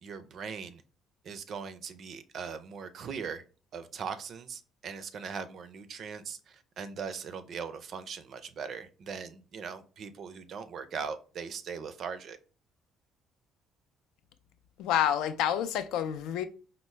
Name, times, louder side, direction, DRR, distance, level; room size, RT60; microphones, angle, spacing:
voice 1, 0.0-0.8 1.2-3.4 3.7-12.4, right 6 dB, 55° right, 0.4 m, -40 dB
voice 2, 14.8-16.5, left 10 dB, 85° left, 0.4 m, -28 dB
4.3 x 2.0 x 3.1 m
cardioid pair, 115°, 0 cm